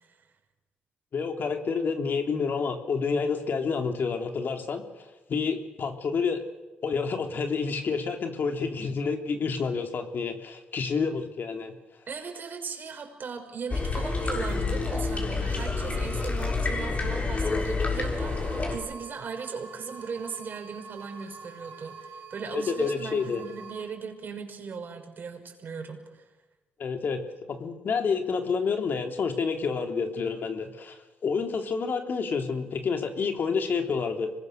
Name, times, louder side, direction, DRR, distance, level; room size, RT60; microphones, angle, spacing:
voice 1, 1.1-4.8 5.3-6.4 6.8-11.7 22.5-23.4 26.8-27.2 27.5-34.3, left 5 dB, 55° left, 5 dB, 3.3 m, -29 dB
voice 2, 12.1-26.2, right 5 dB, 55° right, 4 dB, 6.2 m, -38 dB
sound 1, 13.7-18.8, left 3 dB, 35° left, 6.5 m, -28 dB
sound 2, 18.0-23.8, right 5 dB, 85° right, 4.9 m, -46 dB
26.0 x 21.0 x 6.8 m, 1.2 s
supercardioid pair, 60°, 4 cm